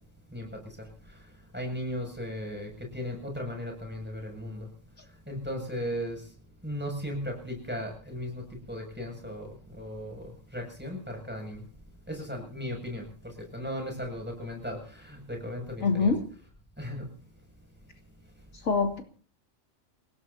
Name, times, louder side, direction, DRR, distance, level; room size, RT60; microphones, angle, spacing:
voice 1, 0.3-4.7 5.3-6.3 6.6-11.6 12.1-16.2 16.8-17.1, equal, 5° right, 1 dB, 7.2 m, -37 dB
voice 2, 15.8-16.2 18.6-19.0, left 4 dB, 75° left, 3 dB, 3.2 m, -24 dB
29.5 x 17.5 x 2.8 m, 0.39 s
omnidirectional pair, 1.4 m